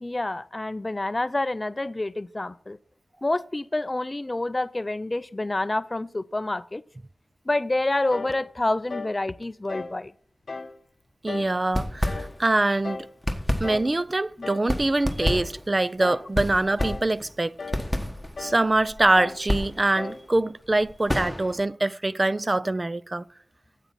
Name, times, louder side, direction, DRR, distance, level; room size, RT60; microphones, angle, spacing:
voice 1, 0.0-2.8 3.2-6.8 7.5-10.1 14.4-14.5, left 2 dB, 30° left, 0.4 m, -28 dB
sound 1, 8.1-8.4 8.9-9.2 9.7-10.0 10.5-10.8 11.3-11.6 12.0-12.4 12.8-13.1 13.6-13.9 14.4-14.7 15.2-15.5 16.0-16.3 16.8-17.1 17.6-17.9 18.4-18.7 19.2-19.5 20.0-20.3, left 3 dB, 60° left, 0.7 m, -36 dB
voice 2, 11.2-13.1 13.6-17.5 18.4-23.2, right 2 dB, 30° right, 0.4 m, -24 dB
sound 2, 11.6-12.7 13.0-21.6, left 1 dB, 5° left, 1.3 m, -30 dB
9.0 x 8.3 x 7.4 m
wide cardioid pair, 70°, 0 cm